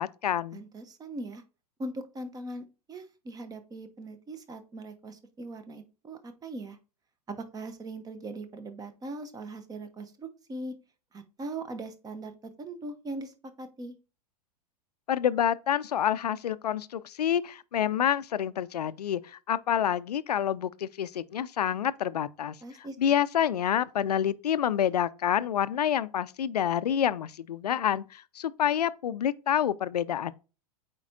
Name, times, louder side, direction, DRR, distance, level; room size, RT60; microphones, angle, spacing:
voice 1, 0.0-0.6 15.1-30.3, left 9 dB, 75° left, 0.5 m, -28 dB
voice 2, 0.5-1.4 1.8-6.8 7.3-10.7 11.1-13.9 22.6-23.0, right 2 dB, 20° right, 0.9 m, -40 dB
8.7 x 4.4 x 2.7 m
figure-of-eight pair, 95°, 20 cm